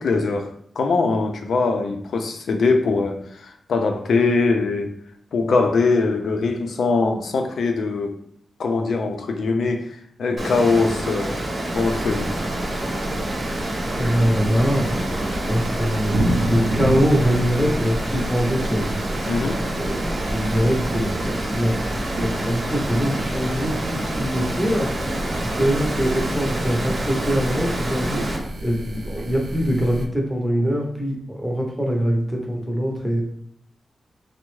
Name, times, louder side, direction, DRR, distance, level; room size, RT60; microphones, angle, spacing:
voice 1, 0.0-4.9 5.3-8.2 8.6-11.4 11.7-12.3 19.3-19.6, left 3 dB, 80° left, 5 dB, 0.4 m, -22 dB
Water, 10.4-28.4, right 1 dB, 40° right, 0.7 m, -28 dB
sound 1, 11.7-30.1, right 1 dB, 80° right, 0.5 m, -30 dB
voice 2, 14.0-18.9 19.8-24.9 25.5-33.2, equal, ahead, 0 dB, 0.6 m, -23 dB
sound 2, 18.1-22.6, equal, 50° left, 0.7 m, -37 dB
3.4 x 2.0 x 3.1 m, 0.69 s
wide cardioid pair, 170°, 0 cm